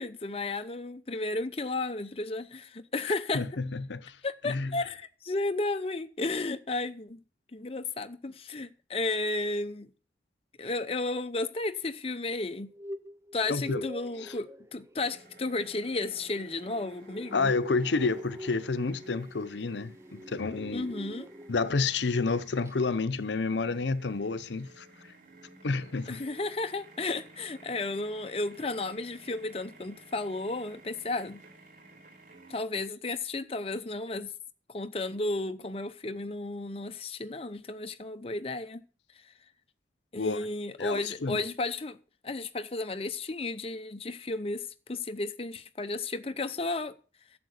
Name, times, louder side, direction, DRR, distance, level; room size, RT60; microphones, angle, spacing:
voice 1, 0.0-3.4 4.2-7.2 7.5-9.9 10.6-12.7 13.3-17.5 20.7-21.3 26.1-31.4 32.5-34.3 34.7-38.8 40.1-42.0 42.2-47.0, left 2 dB, 35° left, 0.7 m, -33 dB
voice 2, 3.1-4.2 4.4-4.7 13.5-13.9 14.2-14.4 17.3-20.9 21.5-24.9 25.6-26.2 40.1-40.5 40.8-41.4, left 4 dB, 85° left, 0.7 m, -30 dB
sound 1, 12.5-21.8 22.1-22.4 22.7-22.8, equal, 15° right, 0.5 m, -45 dB
sound 2, 15.0-32.6, right 2 dB, 50° right, 3.8 m, -55 dB
12.0 x 7.8 x 6.4 m
head